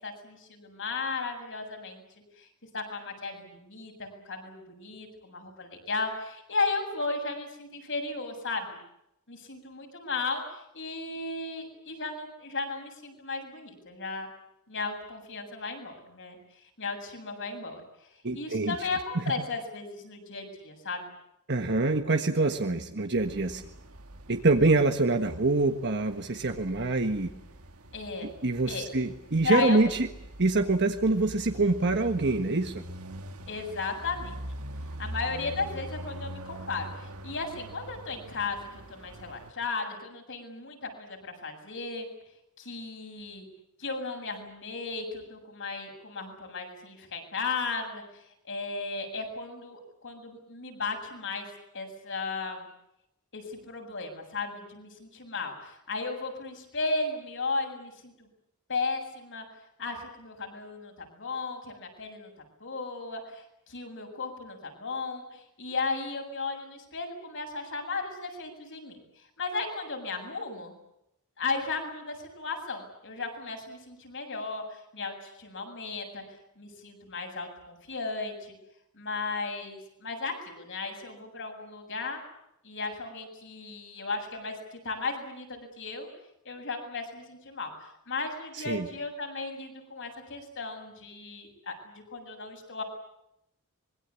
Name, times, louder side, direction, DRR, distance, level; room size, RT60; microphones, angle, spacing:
voice 1, 0.0-2.0 2.4-2.5 2.7-8.8 9.3-14.3 14.7-16.4 16.8-17.8 18.3-21.1 27.9-28.3 28.7-28.9 29.4-30.0 33.5-34.3 35.0-42.1 42.6-43.5 43.8-51.5 51.7-52.7 53.3-58.3 58.7-59.5 59.8-62.3 62.6-69.0 69.4-70.7 71.4-76.2 76.6-78.5 78.9-82.2 82.6-86.1 86.4-92.8, left 3 dB, 60° left, 3 dB, 7.5 m, -35 dB
voice 2, 18.2-18.7 19.1-19.2 21.5-23.6 24.3-27.3 28.4-30.1 30.4-32.8 88.7-88.9, right 2 dB, 50° right, 5 dB, 1.6 m, -25 dB
sound 1, 23.1-39.5, right 1 dB, 75° right, 2.0 m, -44 dB
25.5 x 22.5 x 8.5 m, 0.82 s
head